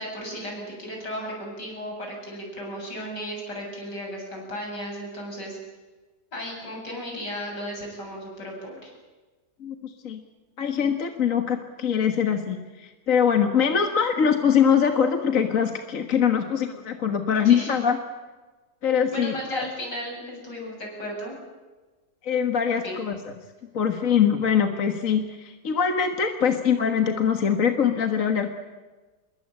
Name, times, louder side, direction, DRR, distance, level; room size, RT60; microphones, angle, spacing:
voice 1, 0.0-5.6 6.3-8.9 17.4-17.7 19.1-21.3 22.7-23.0, equal, 80° left, 0 dB, 8.5 m, -35 dB
voice 2, 9.6-10.2 10.6-18.0 18.8-19.7 22.2-23.3 23.7-28.5, left 7 dB, 50° left, 6 dB, 1.8 m, -23 dB
26.0 x 22.0 x 8.8 m, 1.3 s
omnidirectional pair, 1.8 m